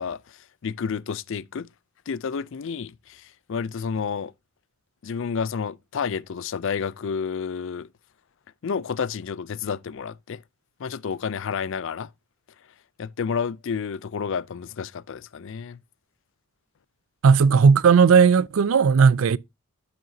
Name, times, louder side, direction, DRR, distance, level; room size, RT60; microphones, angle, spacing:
voice 1, 0.0-1.7 2.1-4.3 5.0-7.9 8.6-10.4 10.8-12.1 13.0-15.8, left 6 dB, 60° left, 0.4 m, -30 dB
voice 2, 17.2-19.4, right 6 dB, 70° right, 0.4 m, -16 dB
9.6 x 7.6 x 2.7 m
head